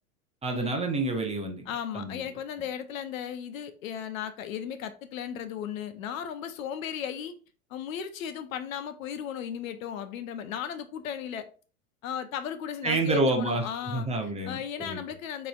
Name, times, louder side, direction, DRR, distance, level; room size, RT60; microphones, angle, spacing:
voice 1, 0.4-2.4 12.8-15.0, right 2 dB, 15° right, 1.0 m, -29 dB
voice 2, 1.7-7.3 7.7-11.5 12.0-14.1 14.4-15.5, left 9 dB, 65° left, 0.8 m, -35 dB
6.6 x 3.3 x 2.4 m
hypercardioid pair, 95°, 43 cm